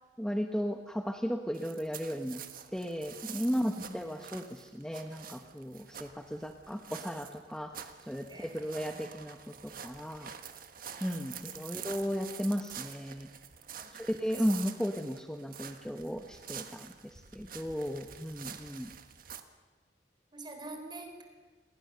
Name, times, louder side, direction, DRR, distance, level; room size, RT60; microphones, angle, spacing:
voice 1, 0.2-2.4 2.7-9.4 9.6-10.3 11.0-13.3 13.9-18.9, equal, 5° left, 5 dB, 1.0 m, -35 dB
sound 1, 1.5-19.4, right 8 dB, 55° right, 1.5 m, -47 dB
voice 2, 3.5-4.0 8.3-9.0 11.1-11.5 13.8-13.9 20.3-21.2, right 1 dB, 25° right, 5 dB, 3.8 m, -46 dB
27.5 x 20.0 x 6.8 m, 1.3 s
head